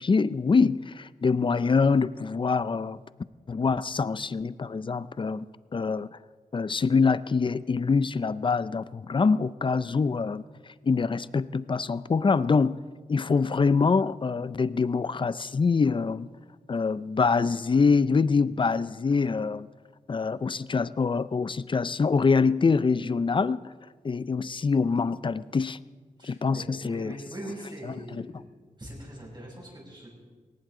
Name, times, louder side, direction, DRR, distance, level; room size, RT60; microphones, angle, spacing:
voice 1, 0.0-3.0 3.5-5.5 5.7-6.1 6.5-10.4 10.8-12.8 13.1-16.3 16.7-19.7 20.1-23.6 24.0-25.8 26.2-27.1 27.8-28.3, left 4 dB, 35° left, 16 dB, 0.4 m, -25 dB
voice 2, 26.2-28.4 28.8-30.1, right 1 dB, 30° right, -3 dB, 6.4 m, -41 dB
20.5 x 18.5 x 3.8 m, 1.5 s
wide cardioid pair, 120°, 14 cm